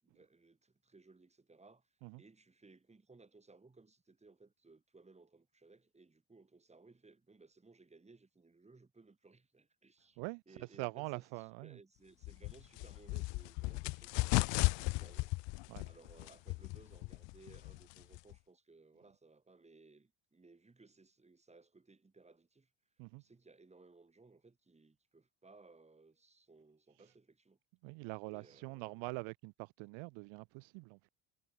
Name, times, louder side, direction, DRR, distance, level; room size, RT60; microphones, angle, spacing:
voice 1, 0.0-10.2 10.5-15.3 15.6-22.7 23.0-27.6 28.3-29.0, right 3 dB, 15° right, 6.3 m, -62 dB
voice 2, 10.2-11.8 15.7-15.9 23.0-23.2 27.8-31.1, right 29 dB, 85° right, 0.8 m, -44 dB
sound 1, 12.2-18.4, left 23 dB, 70° left, 1.0 m, -36 dB
cardioid pair, 130°, 45 cm